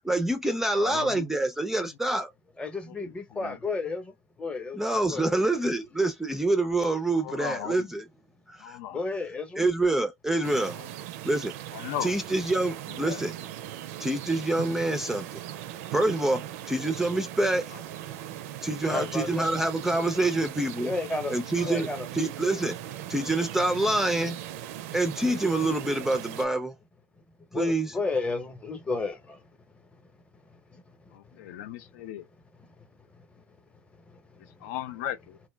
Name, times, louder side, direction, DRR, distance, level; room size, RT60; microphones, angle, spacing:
voice 1, 0.0-2.3 4.7-8.0 8.5-8.8 9.6-10.8 11.2-11.5 12.0-13.3 14.0-15.4 15.9-17.6 18.6-20.9 21.3-21.9 22.1-22.8 23.1-24.4 24.9-26.8 27.5-27.9, right 2 dB, 5° right, 0.4 m, -26 dB
voice 2, 0.8-1.3 2.9-3.6 5.6-5.7 7.1-7.9 8.6-9.0 10.7-10.9 11.7-12.1 12.9-13.2 17.7-17.8 18.9-19.1 21.6-21.8 31.1-32.2 34.4-35.4, left 11 dB, 70° left, 0.4 m, -37 dB
voice 3, 2.6-4.8 5.1-5.4 8.9-9.7 18.9-19.5 20.8-22.1 27.5-29.5 29.7-31.0 31.2-31.5 32.6-33.4 34.1-34.7, left 3 dB, 15° left, 0.8 m, -34 dB
sound 1, 10.4-26.5, right 12 dB, 75° right, 0.4 m, -39 dB
2.2 x 2.1 x 3.3 m
supercardioid pair, 115°, 8 cm